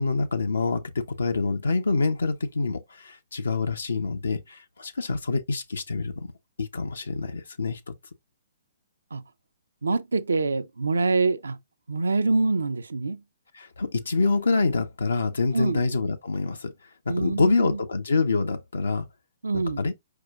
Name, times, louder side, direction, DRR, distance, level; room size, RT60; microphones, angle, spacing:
voice 1, 0.0-6.3 6.6-7.9 13.5-16.7 17.1-19.1 19.8-19.9, left 3 dB, 85° left, 0.7 m, -26 dB
voice 2, 9.8-11.6 11.9-13.2 15.5-15.8 17.1-17.8 19.4-19.8, right 3 dB, 90° right, 0.5 m, -25 dB
4.8 x 4.6 x 2.4 m
hypercardioid pair, 130°, 0 cm